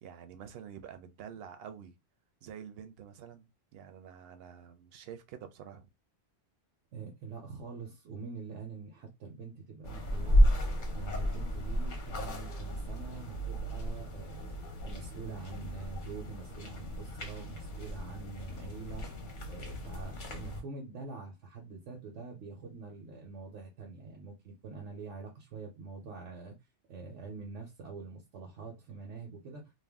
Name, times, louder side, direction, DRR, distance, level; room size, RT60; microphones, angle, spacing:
voice 1, 0.0-1.9 2.4-5.9, right 8 dB, 65° right, 0.7 m, -48 dB
voice 2, 6.9-10.5 10.9-19.1 19.5-26.6 26.9-29.7, right 4 dB, 90° right, 1.0 m, -45 dB
sound 1, 9.8-20.6, equal, 50° left, 0.8 m, -33 dB
2.5 x 2.2 x 3.4 m
omnidirectional pair, 1.2 m